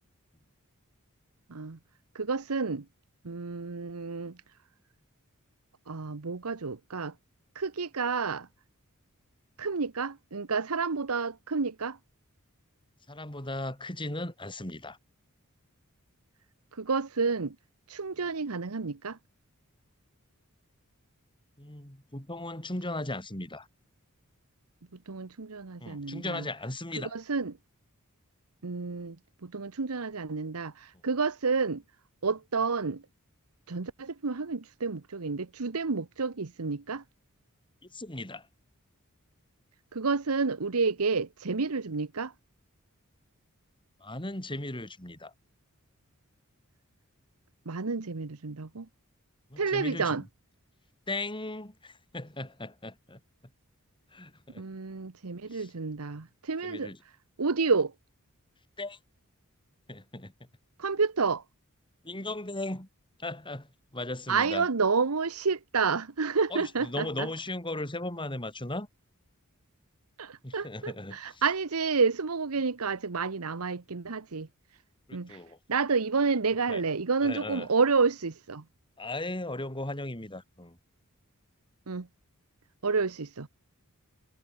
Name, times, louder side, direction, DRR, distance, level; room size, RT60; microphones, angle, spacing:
voice 1, 2.1-2.9 3.2-4.4 5.9-7.1 7.5-8.5 9.6-12.0 16.8-17.6 17.9-19.2 25.1-26.4 27.0-27.6 28.6-29.2 29.4-31.8 32.2-33.0 33.7-37.0 39.9-42.3 47.7-48.9 49.6-50.2 54.6-56.9 57.4-57.9 60.8-61.4 64.3-67.3 70.2-74.5 75.1-75.4 75.7-78.6 81.9-82.1 82.8-83.5, right 4 dB, 85° right, 1.0 m, -30 dB
voice 2, 13.1-15.0 21.6-23.7 25.8-27.1 37.9-38.5 44.0-45.3 49.5-50.2 51.1-53.2 54.1-54.6 55.5-55.7 56.6-57.0 58.8-59.0 59.9-60.3 62.0-62.9 63.2-64.7 66.5-68.9 70.4-71.4 75.1-75.6 76.7-76.8 77.2-77.7 79.0-80.8, left 2 dB, 25° left, 6.8 m, -37 dB
head